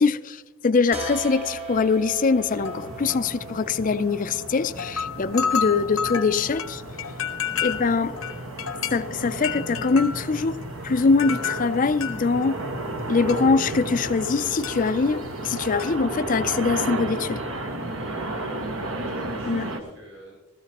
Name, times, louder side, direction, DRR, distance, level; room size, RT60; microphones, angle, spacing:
voice 1, 0.0-6.8 7.6-8.1 8.9-10.6 10.8-12.6 13.1-17.4 19.5-19.7, left 4 dB, 40° left, 0.4 m, -23 dB
sound 1, 0.9-6.4, right 3 dB, 30° right, 1.3 m, -39 dB
sound 2, 1.1-1.4 1.8-1.9 2.5-3.9 4.4-4.5 4.7-14.4 14.6-15.9, left 7 dB, 80° left, 1.1 m, -32 dB
sound 3, 2.5-19.8, right 2 dB, 80° right, 1.4 m, -33 dB
voice 2, 18.8-20.6, right 1 dB, 60° right, 5.2 m, -47 dB
16.5 x 14.0 x 3.0 m
head